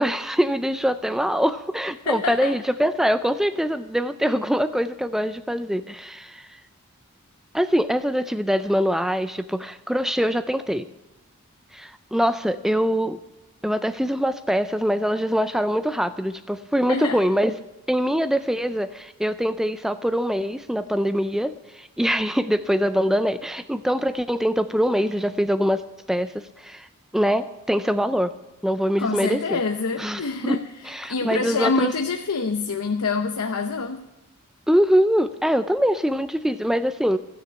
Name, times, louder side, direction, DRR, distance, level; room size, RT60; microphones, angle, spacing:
voice 1, 0.0-6.5 7.5-10.9 11.7-13.2 13.6-17.6 17.9-25.8 26.1-26.9 27.1-28.3 28.6-29.6 30.0-30.6 30.9-31.9 34.7-37.2, equal, ahead, 10 dB, 0.4 m, -23 dB
voice 2, 2.1-2.5 16.9-17.2 29.0-30.7 31.1-34.1, left 4 dB, 90° left, 5 dB, 0.8 m, -26 dB
15.5 x 6.8 x 8.6 m, 1.0 s
head